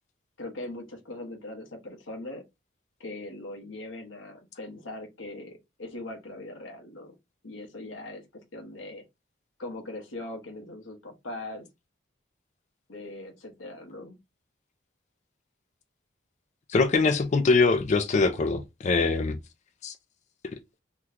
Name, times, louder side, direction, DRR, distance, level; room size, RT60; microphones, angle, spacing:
voice 1, 0.4-2.4 3.0-7.1 7.4-9.0 9.6-11.7 12.9-14.2, left 2 dB, 90° left, 1.1 m, -40 dB
voice 2, 16.7-19.4 19.8-19.9, left 4 dB, 35° left, 0.4 m, -23 dB
3.0 x 2.2 x 3.6 m
head